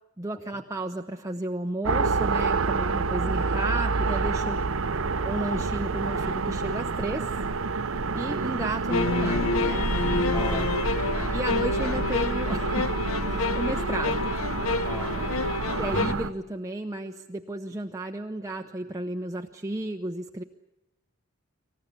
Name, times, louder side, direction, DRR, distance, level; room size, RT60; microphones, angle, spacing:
voice 1, 0.2-4.6 4.9-7.3 8.1-9.9 11.3-12.9 13.2-14.3 15.8-20.4, right 1 dB, 15° right, 3 dB, 0.8 m, -33 dB
sound 1, 1.8-16.3, right 4 dB, 75° right, 0.8 m, -28 dB
sound 2, 8.9-16.2, left 3 dB, 80° left, 0.8 m, -28 dB
voice 2, 10.3-11.3 14.8-15.8, equal, 10° left, 5 dB, 2.2 m, -39 dB
26.5 x 15.0 x 9.9 m, 0.92 s
head